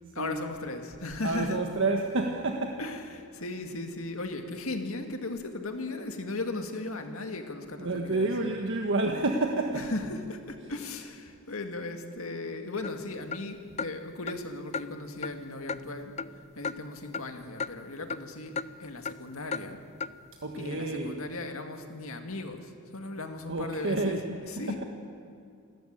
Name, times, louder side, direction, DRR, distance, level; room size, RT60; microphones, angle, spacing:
voice 1, 0.1-1.6 2.8-8.3 9.7-16.1 16.6-18.5 18.8-19.8 20.5-24.2 24.5-24.8, left 2 dB, 65° left, 5 dB, 2.1 m, -37 dB
voice 2, 1.2-2.8 7.8-9.9 20.4-21.2 23.5-24.4, right 2 dB, 60° right, 2 dB, 1.4 m, -29 dB
sound 1, 12.8-13.0 13.3-13.4 13.8-13.9 14.3-14.4 14.7-14.8 15.2-15.3 15.7-15.8 16.2-16.4 16.6-16.8 17.1-17.3 17.6-17.7 18.1-18.2 18.6-18.7 19.0-19.2 19.5-19.6 20.0-20.1, left 5 dB, 30° left, 0.4 m, -34 dB
27.0 x 13.5 x 8.8 m, 2.4 s
head